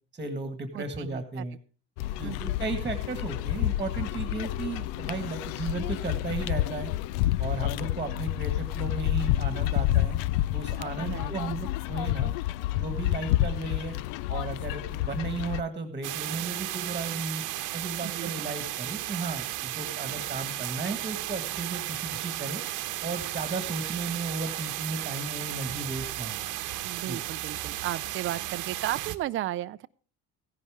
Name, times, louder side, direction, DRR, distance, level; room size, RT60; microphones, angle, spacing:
voice 1, 0.1-1.6 2.2-6.9 7.4-10.2 10.5-12.3 12.8-14.0 14.3-17.4 17.7-22.6 23.0-26.5 27.1-27.2, right 3 dB, 15° right, 8 dB, 1.7 m, -35 dB
voice 2, 0.7-1.4 2.2-2.5 11.0-11.3 18.0-18.5 26.8-29.9, right 13 dB, 35° right, 13 dB, 0.5 m, -35 dB
sound 1, 2.0-15.6, left 15 dB, 85° left, 0.5 m, -29 dB
sound 2, 16.0-29.2, right 15 dB, 60° right, 1.0 m, -34 dB
15.5 x 11.0 x 3.6 m, 0.41 s
cardioid pair, 135°, 35 cm